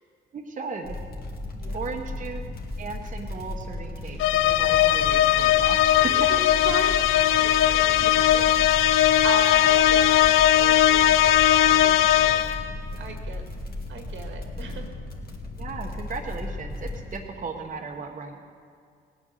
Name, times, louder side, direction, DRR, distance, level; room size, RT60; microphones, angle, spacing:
voice 1, 0.3-1.0 1.7-2.4 2.8-6.3 7.4-7.6 8.0-8.5 9.8-9.9 10.7-10.8 15.6-18.5, right 4 dB, 40° right, 1 dB, 1.1 m, -36 dB
sound 1, 0.8-17.2, left 2 dB, 50° left, 2.0 m, -36 dB
voice 2, 1.4-2.1 4.0-4.3 5.9-12.5 12.9-13.4 13.9-14.9, right 5 dB, 75° right, 4 dB, 1.8 m, -38 dB
sound 2, 4.2-12.7, left 12 dB, 85° left, 0.5 m, -19 dB
17.5 x 9.1 x 6.5 m, 2.2 s
cardioid pair, 90°, 20 cm